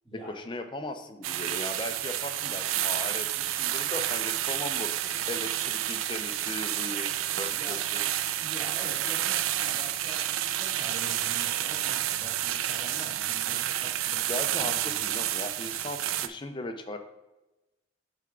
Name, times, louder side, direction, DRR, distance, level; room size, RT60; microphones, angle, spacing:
voice 1, 0.1-8.0 14.3-17.0, left 2 dB, 25° left, 6 dB, 0.5 m, -38 dB
sound 1, 1.2-16.3, right 12 dB, 85° right, 0.3 m, -30 dB
voice 2, 7.5-7.9 8.4-15.0, right 1 dB, ahead, -13 dB, 2.2 m, -45 dB
8.9 x 3.5 x 3.7 m, 1.0 s
head